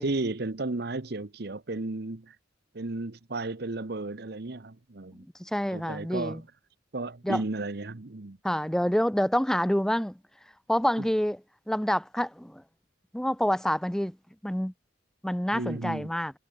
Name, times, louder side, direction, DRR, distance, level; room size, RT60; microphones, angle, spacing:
voice 1, 0.0-2.4 2.7-5.2 5.7-6.5 6.9-8.4 11.0-11.1 15.5-16.1, right 2 dB, 55° right, 1.0 m, -33 dB
voice 2, 5.4-6.4 7.2-7.4 8.4-10.2 10.7-11.4 11.7-12.6 13.1-14.2 14.4-14.7 15.2-16.3, equal, 5° left, 0.5 m, -27 dB
head